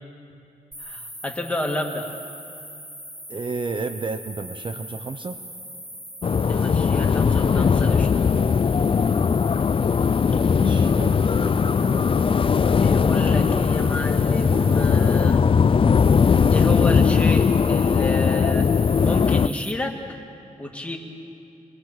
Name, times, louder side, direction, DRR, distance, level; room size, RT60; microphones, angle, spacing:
sound 1, 0.7-19.7, equal, 15° right, 2.2 m, -40 dB
voice 1, 0.8-2.1 6.4-8.2 12.8-15.4 16.5-18.7 19.0-20.2 20.6-21.0, left 1 dB, 10° left, 1 dB, 2.1 m, -30 dB
voice 2, 3.3-5.4 10.5-12.1, right 4 dB, 35° right, 7 dB, 0.7 m, -32 dB
sound 2, 6.2-19.5, left 6 dB, 40° left, 0.4 m, -19 dB
23.5 x 22.0 x 6.0 m, 2.6 s
wide cardioid pair, 125°, 14 cm